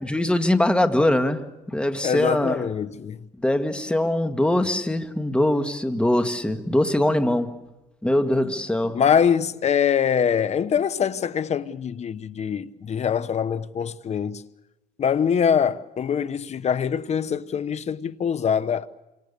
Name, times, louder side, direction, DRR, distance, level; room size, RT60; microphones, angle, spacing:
voice 1, 0.0-2.7 3.4-7.6 8.0-9.0, left 1 dB, 5° left, 1.8 m, -22 dB
voice 2, 2.0-3.2 8.9-14.4 15.0-18.9, left 7 dB, 40° left, 1.1 m, -23 dB
27.5 x 26.0 x 6.8 m
cardioid pair, 110°, 17 cm